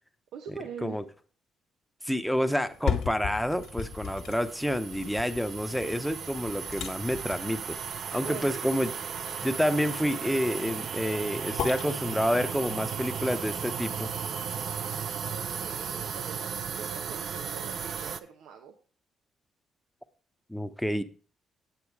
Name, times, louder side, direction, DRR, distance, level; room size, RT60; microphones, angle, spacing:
voice 1, 0.3-1.0 8.1-8.7 15.2-18.7, right 7 dB, 85° right, 1.0 m, -43 dB
voice 2, 2.0-7.8 8.1-8.9 9.4-14.1 20.5-21.0, equal, ahead, 0.9 m, -29 dB
sound 1, 2.6-14.6 15.0-15.1, left 8 dB, 75° left, 1.5 m, -38 dB
sound 2, 3.0-18.2, right 7 dB, 60° right, 0.6 m, -36 dB
9.1 x 7.8 x 4.8 m
cardioid pair, 90°, 0 cm